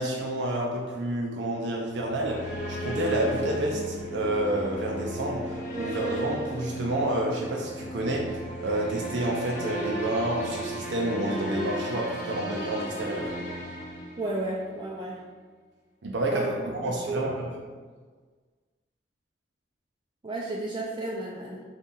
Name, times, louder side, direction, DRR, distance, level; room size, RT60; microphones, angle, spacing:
voice 1, 0.0-13.3 16.0-17.5, right 1 dB, 80° right, -2 dB, 0.6 m, -29 dB
sound 1, 1.9-14.7, equal, 45° left, 0.7 m, -35 dB
voice 2, 14.2-15.2 16.3-16.5 16.8-17.3 20.2-21.6, right 2 dB, 25° right, -3 dB, 0.4 m, -32 dB
4.1 x 2.8 x 3.6 m, 1.5 s
head